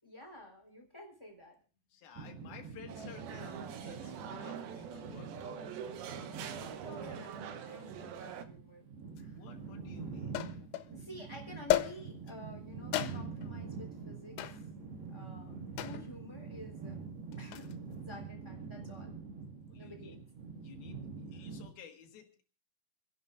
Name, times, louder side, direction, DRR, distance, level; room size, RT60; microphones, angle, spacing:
voice 1, 0.0-1.6 6.5-8.8 9.2-9.4 10.9-14.6 15.1-15.5 15.8-17.0 17.4-17.7 18.0-19.1 19.7-20.2, left 1 dB, 5° left, 2 dB, 3.0 m, -51 dB
voice 2, 1.9-5.7 9.3-10.4 17.6-17.7 19.7-20.2 20.6-21.0 21.3-22.4, left 8 dB, 60° left, 3 dB, 2.9 m, -54 dB
sound 1, 2.2-21.7, right 5 dB, 60° right, 3.5 m, -45 dB
sound 2, 2.9-8.4, right 8 dB, 85° right, 2.1 m, -44 dB
sound 3, 9.2-9.3 10.3-10.9 11.7-12.3 12.9-13.5 14.4-14.7 15.8-16.1 17.3-17.7, left 13 dB, 90° left, 3.4 m, -33 dB
29.0 x 11.0 x 2.5 m, 0.37 s
omnidirectional pair, 5.7 m